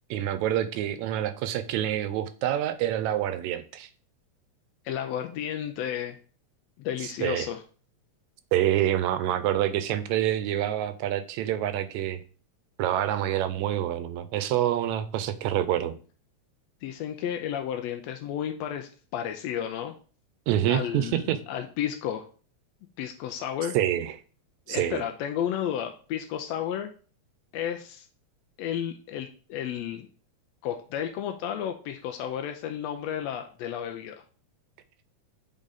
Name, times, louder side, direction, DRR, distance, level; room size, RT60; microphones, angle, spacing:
voice 1, 0.1-3.9 7.0-7.5 8.5-12.2 12.8-15.9 20.5-21.4 23.7-24.2 24.7-25.0, right 12 dB, 80° right, 12 dB, 1.9 m, -27 dB
voice 2, 4.8-6.2 6.8-7.6 16.8-19.9 20.7-22.3 23.0-23.8 24.7-26.9 27.5-28.1 28.6-30.1 30.6-34.2, left 10 dB, 80° left, 4 dB, 1.6 m, -32 dB
7.3 x 3.9 x 3.9 m, 0.39 s
omnidirectional pair, 3.3 m